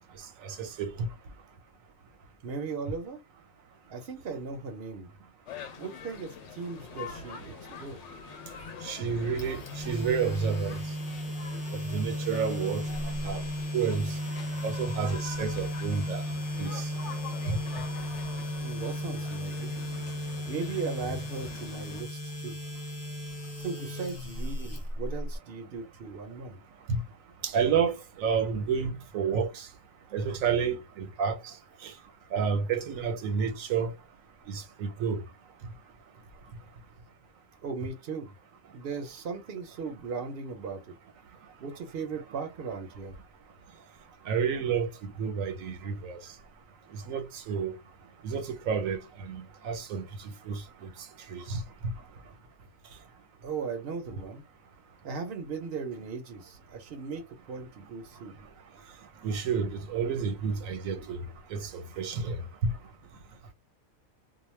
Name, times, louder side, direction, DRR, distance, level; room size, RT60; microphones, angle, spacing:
voice 1, 0.6-1.1 8.8-10.8 11.9-12.8 13.2-13.4 13.7-14.1 14.6-16.2 16.6-16.9 17.5-17.6 26.9-27.0 27.4-29.7 30.1-31.4 31.8-31.9 32.3-33.9 34.5-35.2 44.3-44.9 45.2-46.2 47.1-47.7 48.2-50.0 50.5-50.6 51.3-51.6 59.2-61.2 61.5-62.4 62.6-62.7, right 6 dB, 80° right, 1.1 m, -30 dB
voice 2, 2.4-3.2 3.9-5.1 5.8-7.5 7.8-8.0 18.6-19.8 20.5-22.5 23.6-26.6 37.6-38.3 38.7-40.9 41.6-43.2 53.4-54.4 55.0-58.4, right 5 dB, 55° right, 0.8 m, -37 dB
sound 1, 5.5-22.0, left 7 dB, 65° left, 0.8 m, -45 dB
sound 2, 9.4-25.4, equal, 20° left, 0.6 m, -35 dB
2.3 x 2.1 x 3.1 m
omnidirectional pair, 1.4 m